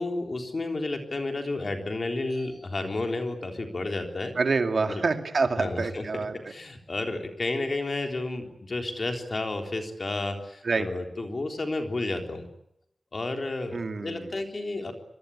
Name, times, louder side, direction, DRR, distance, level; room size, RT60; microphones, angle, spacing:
voice 1, 0.0-4.3 4.9-5.0 5.6-12.5 13.1-14.9, left 2 dB, 45° left, 4 dB, 3.8 m, -31 dB
voice 2, 4.4-6.3 10.6-10.9 13.7-14.3, right 4 dB, 60° right, 6 dB, 2.6 m, -27 dB
25.5 x 22.5 x 8.6 m, 0.81 s
wide cardioid pair, 115°, 0 cm